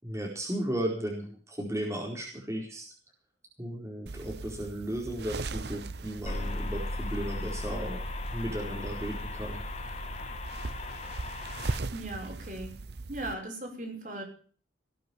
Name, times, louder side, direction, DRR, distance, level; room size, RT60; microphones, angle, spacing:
voice 1, 0.0-2.9 3.6-8.0 8.3-9.6, right 1 dB, 15° right, -2 dB, 4.5 m, -35 dB
sound 1, 4.1-13.3, right 3 dB, 70° right, 0.8 m, -40 dB
sound 2, 6.3-11.8, left 2 dB, 40° left, 2.1 m, -36 dB
voice 2, 11.9-12.8 13.1-14.2, right 1 dB, 45° right, 1 dB, 6.1 m, -38 dB
19.0 x 9.1 x 7.2 m, 0.43 s
head